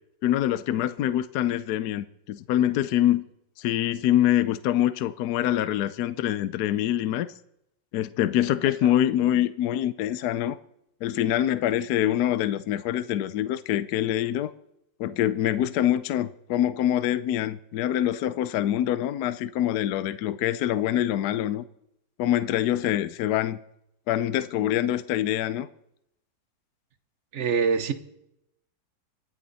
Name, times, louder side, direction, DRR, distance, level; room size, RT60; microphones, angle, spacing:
voice 1, 0.2-3.2 3.6-7.3 7.9-10.6 11.0-14.5 15.0-21.6 22.2-23.6 24.1-25.7, left 12 dB, 70° left, 1.1 m, -25 dB
voice 2, 27.3-27.9, right 6 dB, 50° right, 1.0 m, -24 dB
26.0 x 8.9 x 4.1 m
omnidirectional pair, 2.0 m